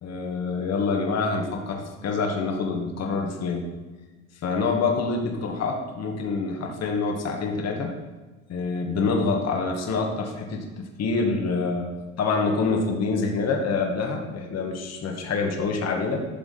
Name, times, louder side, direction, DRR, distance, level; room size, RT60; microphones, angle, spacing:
voice 1, 0.0-3.7 4.4-7.9 8.5-11.9 12.2-16.3, left 4 dB, 40° left, 1 dB, 2.0 m, -26 dB
12.0 x 7.0 x 4.3 m, 1.3 s
hypercardioid pair, 75°, 41 cm